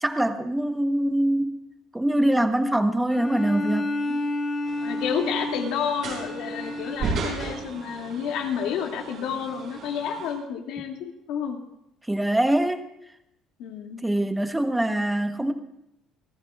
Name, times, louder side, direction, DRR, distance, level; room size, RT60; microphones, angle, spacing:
voice 1, 0.0-1.5 1.9-4.2 12.1-12.9 14.0-15.5, right 1 dB, 10° right, 7 dB, 1.1 m, -24 dB
Bowed string instrument, 3.1-7.8, left 2 dB, 35° left, 4.2 m, -31 dB
sound 1, 4.7-10.3, right 5 dB, 60° right, 6.2 m, -36 dB
voice 2, 4.8-11.6 13.6-14.0, left 7 dB, 80° left, 1 dB, 2.4 m, -30 dB
27.5 x 14.0 x 2.4 m, 0.83 s
cardioid pair, 125°, 0 cm